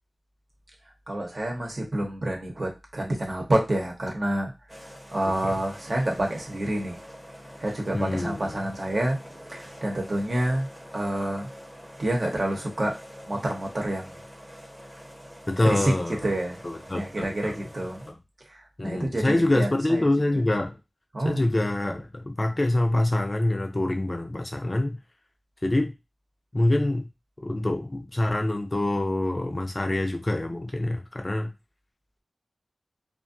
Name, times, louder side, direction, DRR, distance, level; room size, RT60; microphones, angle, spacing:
voice 1, 1.1-4.8 5.1-7.0 7.6-9.2 9.5-10.7 10.9-11.5 12.0-13.0 13.3-14.1 15.6-15.9 16.2-16.6 16.9-18.0 18.5-20.1 21.1-21.4, right 1 dB, 55° right, 0 dB, 0.9 m, -28 dB
sound 1, 4.7-18.1, equal, 10° right, 0.8 m, -45 dB
voice 2, 7.9-8.6 15.5-16.2 16.6-17.6 18.1-18.2 18.8-20.8 21.2-25.0 25.6-25.9 26.5-27.1 27.4-31.5, left 1 dB, 35° left, 3 dB, 0.5 m, -25 dB
2.4 x 2.2 x 2.6 m, 0.25 s
cardioid pair, 45°, 0 cm